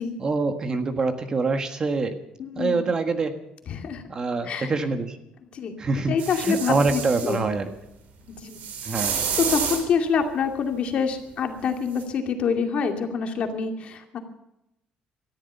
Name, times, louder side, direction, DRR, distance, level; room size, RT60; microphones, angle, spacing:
voice 1, 0.2-2.2 2.6-3.3 4.1-5.2 5.8-7.7 8.8-9.2, right 3 dB, 30° right, 8 dB, 1.5 m, -25 dB
voice 2, 2.4-2.9 3.7-4.0 4.4-4.7 5.5-5.8 6.1-7.4 8.3-8.6 8.9-9.1 9.4-14.2, left 6 dB, 45° left, 5 dB, 2.4 m, -26 dB
sound 1, 6.2-7.4 8.5-9.9 12.0-12.1, right 7 dB, 70° right, 4.0 m, -29 dB
19.0 x 14.0 x 5.6 m, 0.86 s
cardioid pair, 155°, 3 cm